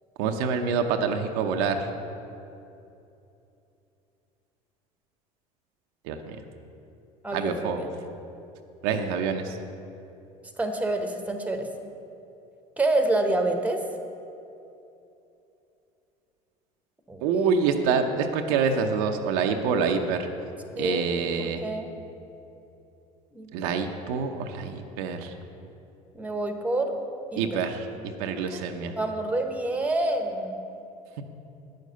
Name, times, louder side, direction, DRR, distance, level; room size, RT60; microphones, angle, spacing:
voice 1, 0.2-1.9 6.0-6.4 7.3-7.8 8.8-9.6 17.2-20.2 20.8-21.6 23.5-25.3 27.3-27.9 28.2-28.9, right 5 dB, 70° right, 5 dB, 0.8 m, -26 dB
voice 2, 7.2-7.9 10.6-11.7 12.8-13.8 17.1-17.2 20.8-21.3 21.6-21.9 23.3-23.8 26.1-26.9 27.3-27.6 28.4-30.6, right 2 dB, 10° right, 5 dB, 1.2 m, -28 dB
9.0 x 6.5 x 6.7 m, 2.8 s
hypercardioid pair, 80°, 18 cm